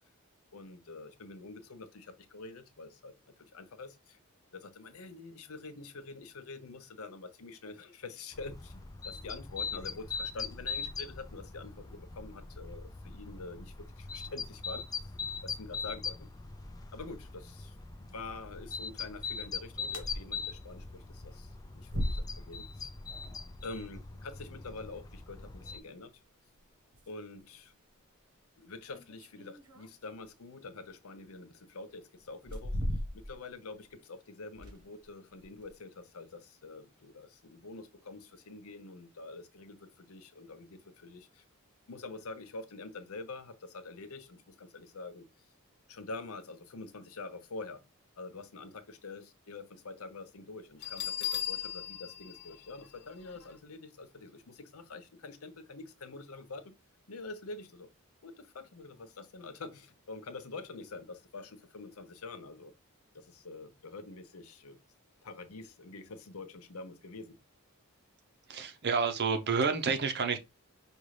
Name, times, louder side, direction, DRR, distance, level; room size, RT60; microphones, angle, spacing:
voice 1, 0.5-3.1 3.5-4.2 4.5-14.9 15.4-16.3 16.9-17.7 18.0-21.5 21.7-22.9 23.6-26.1 27.1-27.7 28.6-32.8 33.1-41.4 41.9-45.3 45.9-47.8 48.2-56.7 57.1-57.9 58.2-62.7 63.1-64.8 65.2-67.4, left 3 dB, 75° left, 0.7 m, -46 dB
sound 1, 8.3-25.8, left 5 dB, 15° left, 0.3 m, -41 dB
sound 2, 19.9-20.2 20.6-20.7 21.9-22.6 25.3-25.4 26.5-26.6 26.9-27.1 27.6-27.7 28.9-30.3 31.3-31.4 32.3-33.5 33.8-33.9 34.5-35.0 35.4-35.7, equal, 85° right, 1.2 m, -37 dB
Bell, 50.8-53.5, left 11 dB, 50° left, 0.9 m, -38 dB
voice 2, 68.5-70.4, right 5 dB, 50° right, 0.6 m, -29 dB
5.3 x 2.4 x 3.2 m
head